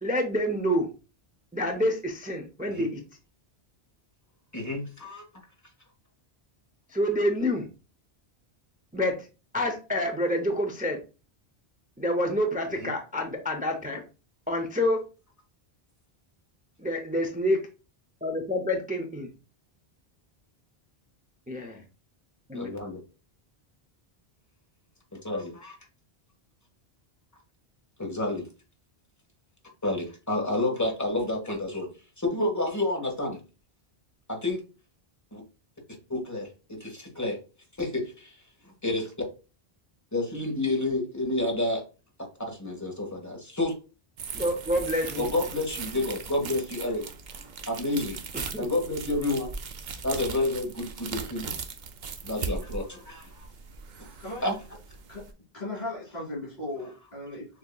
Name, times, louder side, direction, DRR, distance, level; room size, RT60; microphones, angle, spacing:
voice 1, 0.0-0.9 1.5-3.0 6.9-7.7 8.9-9.3 9.5-11.0 12.0-14.0 14.5-15.0 16.8-17.7 18.2-19.3 21.5-21.8 22.5-22.8 44.3-45.3 48.3-48.7, left 1 dB, 10° right, 4 dB, 0.5 m, -27 dB
voice 2, 4.5-5.2 12.8-12.9 22.5-23.0 25.1-25.8 28.0-28.5 29.8-31.9 32.2-33.4 34.3-34.6 35.3-35.4 36.1-37.4 37.8-38.4 38.8-39.1 40.1-41.8 42.4-43.7 45.2-47.1 47.7-48.2 48.6-49.5 50.0-51.6 52.2-53.5 54.0-54.1 54.4-54.5, left 2 dB, 15° left, 1 dB, 1.3 m, -29 dB
sound 1, 44.2-55.3, right 5 dB, 55° right, 0.6 m, -39 dB
voice 3, 55.5-57.6, left 2 dB, 50° left, -7 dB, 2.5 m, -37 dB
6.5 x 2.8 x 2.3 m, 0.32 s
omnidirectional pair, 1.0 m